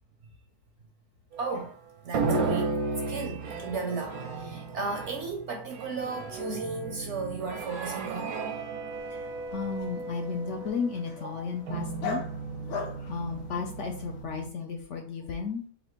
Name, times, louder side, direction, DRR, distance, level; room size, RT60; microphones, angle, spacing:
sound 1, 1.3-1.9 2.1-14.5, right 3 dB, 85° right, 1.5 m, -35 dB
voice 1, 1.4-1.7 2.0-2.8 3.1-8.3 11.2-11.4 12.7-13.1, right 4 dB, 60° right, 0.8 m, -35 dB
Dog, 8.9-14.2, left 4 dB, 75° left, 1.3 m, -41 dB
voice 2, 9.5-12.2 13.1-15.7, left 5 dB, 60° left, 0.8 m, -34 dB
4.1 x 2.6 x 4.4 m
omnidirectional pair, 1.7 m